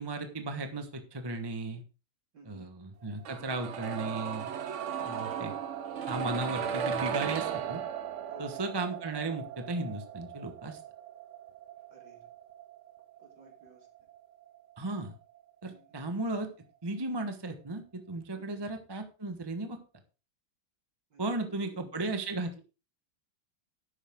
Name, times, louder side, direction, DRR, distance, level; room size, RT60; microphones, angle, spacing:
voice 1, 0.0-1.8 2.5-4.5 5.0-5.5 6.1-7.8 8.4-10.8 14.8-15.2 15.6-16.5 16.8-19.8 21.2-22.6, right 2 dB, 15° right, 6 dB, 0.9 m, -35 dB
voice 2, 2.3-2.7 8.3-8.7 11.9-12.3 13.2-13.9 15.7-16.0 18.3-18.6 21.1-21.9, right 2 dB, 50° right, 0 dB, 4.2 m, -56 dB
sound 1, 3.2-15.1 15.4-15.5, right 8 dB, 70° right, 0.7 m, -37 dB
11.5 x 9.0 x 3.7 m, 0.31 s
omnidirectional pair, 2.3 m